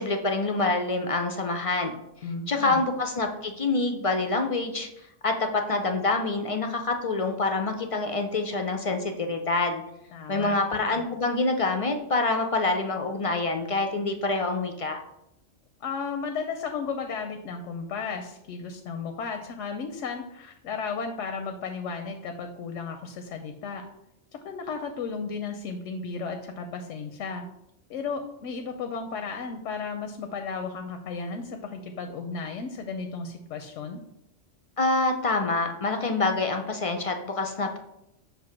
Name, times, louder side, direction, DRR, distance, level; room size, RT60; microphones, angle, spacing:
voice 1, 0.0-1.9 2.5-4.9 5.2-9.8 10.3-15.0 34.8-37.8, left 3 dB, 50° left, 5 dB, 0.4 m, -26 dB
voice 2, 2.2-2.8 10.1-10.5 15.8-23.8 24.3-27.5 27.9-34.0, left 5 dB, 85° left, 6 dB, 1.0 m, -34 dB
6.8 x 2.7 x 5.7 m, 0.84 s
omnidirectional pair, 1.2 m